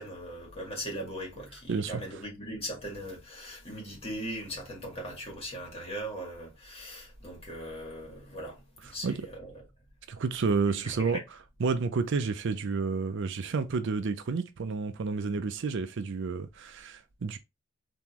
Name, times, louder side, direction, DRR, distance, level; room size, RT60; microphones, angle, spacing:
voice 1, 0.0-9.5 10.7-11.2, equal, 30° left, 1.9 m, -39 dB
voice 2, 1.7-2.0 9.0-9.2 10.1-11.2 11.6-17.4, right 4 dB, 65° right, 0.5 m, -30 dB
3.7 x 2.9 x 2.9 m
head